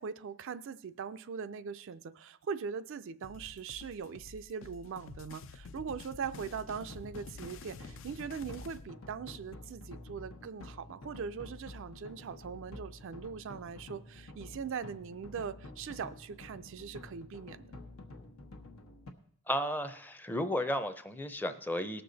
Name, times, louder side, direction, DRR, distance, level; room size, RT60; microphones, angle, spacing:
voice 1, 0.0-17.7, right 6 dB, 60° right, 12 dB, 0.4 m, -41 dB
sound 1, 3.2-8.8, left 4 dB, 65° left, 0.5 m, -50 dB
sound 2, 6.3-19.1, left 2 dB, 90° left, 1.2 m, -49 dB
voice 2, 19.5-22.0, equal, 10° left, 10 dB, 0.5 m, -33 dB
18.5 x 6.7 x 4.0 m, 0.63 s
head